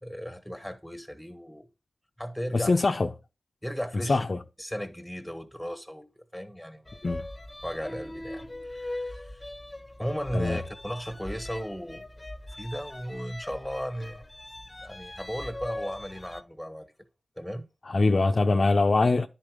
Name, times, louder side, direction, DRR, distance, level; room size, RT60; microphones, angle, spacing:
voice 1, 0.0-1.7 2.2-2.7 3.6-4.2 4.6-6.8 7.6-9.5 10.0-12.1 12.5-14.3 14.8-16.9 17.4-17.7, equal, ahead, 1.6 m, -36 dB
voice 2, 2.5-3.1 4.1-4.4 7.0-7.3 10.3-10.6 17.9-19.3, left 3 dB, 55° left, 0.6 m, -23 dB
sound 1, 6.9-16.4, left 1 dB, 20° left, 1.0 m, -40 dB
9.9 x 4.2 x 5.1 m
cardioid pair, 45°, 0 cm